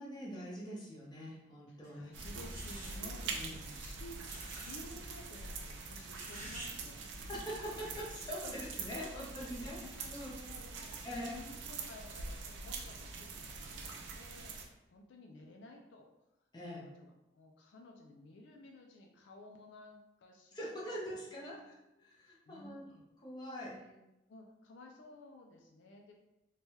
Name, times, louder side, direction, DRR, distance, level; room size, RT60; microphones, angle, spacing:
voice 1, 0.0-2.1 3.3-3.7 7.2-9.8 10.1-10.4 11.0-11.3 16.5-16.9 20.5-22.8 23.2-23.8, equal, 20° left, -5 dB, 0.6 m, -44 dB
voice 2, 1.7-7.0 7.5-7.8 8.4-8.5 9.1-9.5 9.8-16.1 16.7-20.7 21.4-21.5 22.2-23.0 23.7-26.1, left 2 dB, 70° left, 1 dB, 0.4 m, -55 dB
sound 1, 1.8-2.0 2.5-3.0 4.2-4.8 5.0-5.1 6.1-6.7 7.0-7.1, right 1 dB, 30° right, 0.9 m, -48 dB
sound 2, 2.1-14.6, right 4 dB, 75° right, 0.4 m, -44 dB
3.2 x 2.2 x 2.7 m, 0.92 s
head